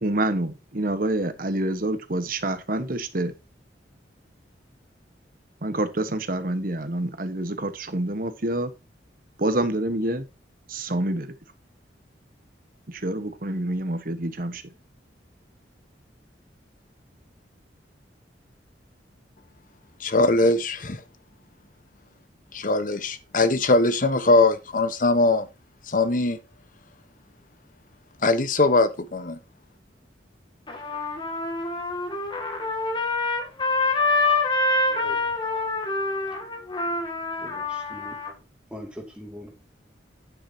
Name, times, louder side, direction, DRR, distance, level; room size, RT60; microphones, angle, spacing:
voice 1, 0.0-3.3 5.6-8.7 9.4-10.2 10.7-11.3 12.9-14.6, right 1 dB, 50° right, 1.3 m, -27 dB
voice 2, 20.0-21.0 22.5-25.5 25.9-26.4 28.2-29.4, left 2 dB, 45° left, 1.1 m, -21 dB
Trumpet, 30.7-38.3, left 2 dB, 25° left, 2.2 m, -26 dB
voice 3, 34.9-35.6 37.4-38.2 38.7-39.5, equal, 5° right, 2.4 m, -42 dB
9.6 x 8.7 x 2.8 m
head